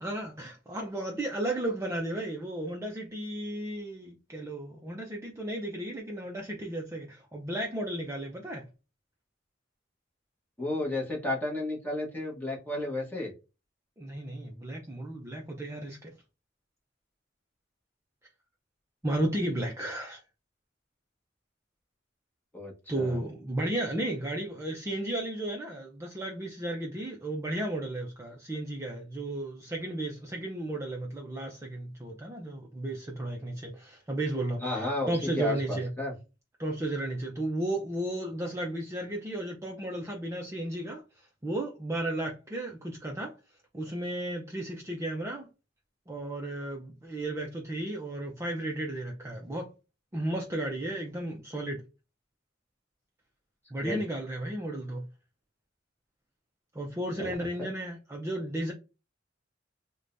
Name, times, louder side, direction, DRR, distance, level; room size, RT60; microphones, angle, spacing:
voice 1, 0.0-8.7 14.0-16.1 19.0-20.2 22.9-35.9 36.6-43.3 43.7-45.5 46.1-49.7 50.1-51.8 53.7-55.0 56.7-58.7, right 1 dB, 15° right, 0.5 m, -34 dB
voice 2, 10.6-13.3 22.5-23.2 34.6-36.1 53.8-54.0 57.2-57.7, left 2 dB, 10° left, 1.1 m, -33 dB
4.7 x 2.2 x 2.5 m
head